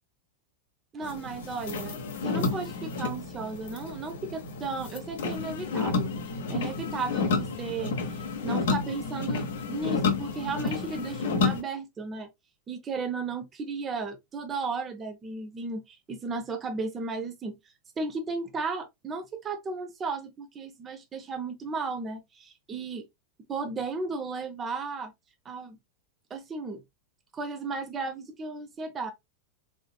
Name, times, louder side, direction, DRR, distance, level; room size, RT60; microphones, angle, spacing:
voice 1, 0.9-6.1 6.5-7.9 8.4-12.3 12.7-17.6 18.0-23.1 23.5-25.1 25.4-25.8 26.3-26.8 27.3-29.1, right 4 dB, 20° right, 0.7 m, -34 dB
sound 1, 1.0-11.6, left 4 dB, 60° left, 0.8 m, -31 dB
3.6 x 3.6 x 2.3 m
figure-of-eight pair, 90°, 0 cm